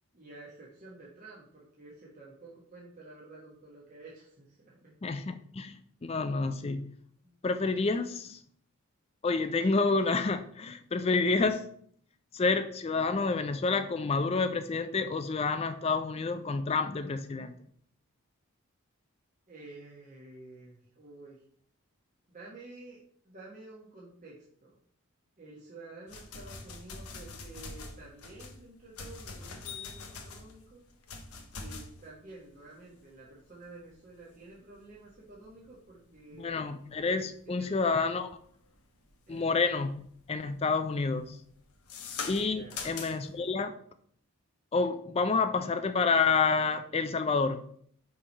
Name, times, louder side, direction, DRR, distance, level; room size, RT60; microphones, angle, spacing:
voice 1, 0.1-5.0 7.2-7.4 19.5-21.4 22.3-23.0 23.2-24.8 25.4-30.8 31.5-36.5 37.4-37.7 38.0-38.1 39.3-39.4 42.5-42.9 43.3-43.5, right 2 dB, 35° right, -6 dB, 1.2 m, -50 dB
voice 2, 5.0-6.9 7.4-8.4 9.2-11.7 12.3-17.5 36.4-38.3 39.3-40.0 40.3-41.4 42.3-43.7 44.7-47.6, left 4 dB, 25° left, 9 dB, 0.3 m, -29 dB
sound 1, 26.1-39.4 39.8-40.2 40.5-43.4, left 4 dB, 90° left, 1.0 m, -44 dB
5.7 x 3.3 x 5.2 m, 0.62 s
head